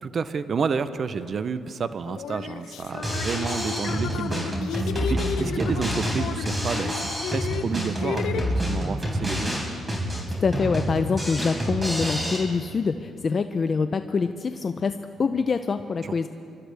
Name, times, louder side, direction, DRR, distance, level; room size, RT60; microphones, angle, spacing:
voice 1, 0.0-9.6 16.0-16.3, right 5 dB, 50° right, 12 dB, 0.6 m, -30 dB
sound 1, 1.3-1.4 2.1-8.4, left 8 dB, 80° left, 0.7 m, -33 dB
Drum kit, 2.9-12.4, equal, 15° right, 4.5 m, -28 dB
voice 2, 10.4-16.3, left 5 dB, 40° left, 9 dB, 0.5 m, -25 dB
27.0 x 13.5 x 3.4 m, 2.6 s
cardioid pair, 90°, 0 cm